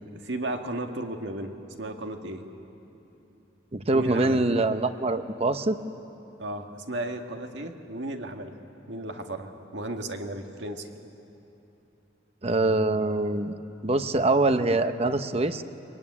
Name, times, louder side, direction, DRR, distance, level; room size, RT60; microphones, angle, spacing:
voice 1, 0.0-2.5 3.9-4.6 6.4-8.6 8.9-10.9, right 1 dB, 65° right, 4 dB, 1.9 m, -34 dB
voice 2, 3.7-5.8 12.4-13.5 13.8-15.6, right 2 dB, 30° right, 10 dB, 0.9 m, -24 dB
24.5 x 23.0 x 9.8 m, 2.9 s
head